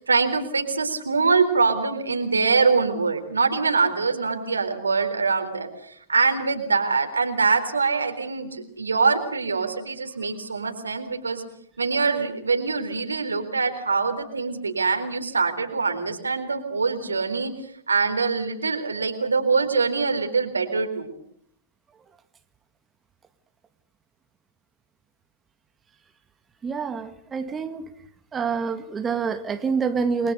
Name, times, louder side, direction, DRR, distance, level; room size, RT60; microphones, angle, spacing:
voice 1, 0.0-11.4 11.8-17.5 17.9-21.1, right 4 dB, 85° right, 3.8 m, -24 dB
voice 2, 26.6-27.9 28.3-30.3, right 5 dB, 20° right, 1.8 m, -27 dB
29.5 x 22.0 x 6.8 m
figure-of-eight pair, 105°, 0 cm